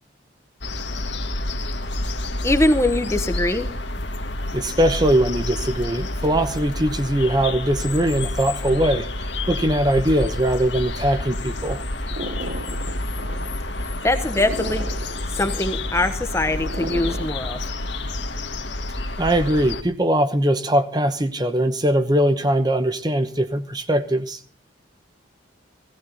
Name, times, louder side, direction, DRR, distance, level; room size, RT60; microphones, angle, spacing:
sound 1, 0.6-19.8, left 2 dB, 60° left, 1.7 m, -29 dB
voice 1, 2.4-3.7 14.0-14.9 15.4-17.6, left 1 dB, 15° left, 9 dB, 1.0 m, -22 dB
voice 2, 4.5-11.8 19.2-24.4, right 1 dB, 20° right, 9 dB, 1.0 m, -21 dB
sound 2, 12.1-17.3, right 1 dB, 50° right, 1.3 m, -36 dB
17.5 x 16.5 x 4.0 m, 0.38 s
head